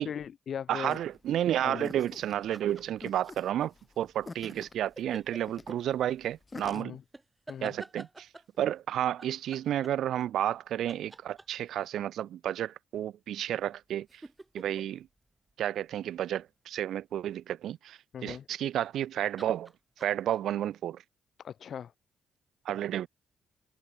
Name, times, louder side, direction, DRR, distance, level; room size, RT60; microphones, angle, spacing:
voice 1, 0.0-1.0 1.6-1.9 6.7-7.0 7.5-7.8 18.1-18.5 21.4-21.9, left 8 dB, 55° left, 0.8 m, -39 dB
voice 2, 0.7-7.0 7.6-8.3 8.6-14.1 14.5-15.1 15.6-19.7 20.0-21.0 22.7-23.1, right 11 dB, 75° right, 0.6 m, -31 dB
sound 1, 0.9-6.8, left 3 dB, 25° left, 7.1 m, -47 dB
sound 2, 2.3-3.5 5.0-5.8 7.1-8.6 9.2-10.6 10.9-11.8 13.6-16.3 18.7-19.0 19.4-20.4, right 2 dB, 15° right, 3.7 m, -48 dB
cardioid pair, 90°, 0 cm